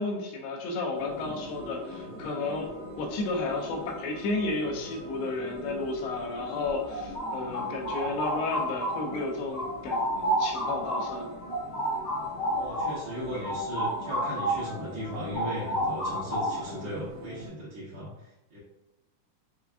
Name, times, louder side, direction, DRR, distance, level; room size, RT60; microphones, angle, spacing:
voice 1, 0.0-2.7 3.0-11.3, left 3 dB, 85° left, 1 dB, 2.8 m, -32 dB
sound 1, 0.9-17.5, left 1 dB, 65° right, 2.0 m, -43 dB
sound 2, 6.7-9.2 9.5-14.7 15.0-16.8, right 1 dB, 60° left, 1.4 m, -31 dB
voice 2, 12.5-18.6, equal, 80° right, -10 dB, 1.1 m, -37 dB
6.8 x 2.5 x 2.4 m, 0.97 s
omnidirectional pair, 4.5 m